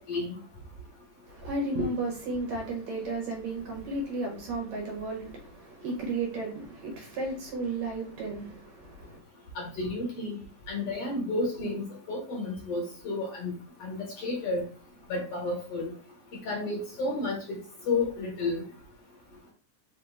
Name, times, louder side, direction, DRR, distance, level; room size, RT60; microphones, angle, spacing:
voice 1, 1.3-9.2, right 2 dB, 70° right, 2.0 m, -33 dB
voice 2, 9.6-10.4 10.7-11.8 12.1-13.5 13.8-14.6 15.1-15.9 16.5-17.6 17.9-18.6, left 2 dB, 60° left, 2.0 m, -31 dB
4.9 x 2.9 x 3.3 m
omnidirectional pair, 3.7 m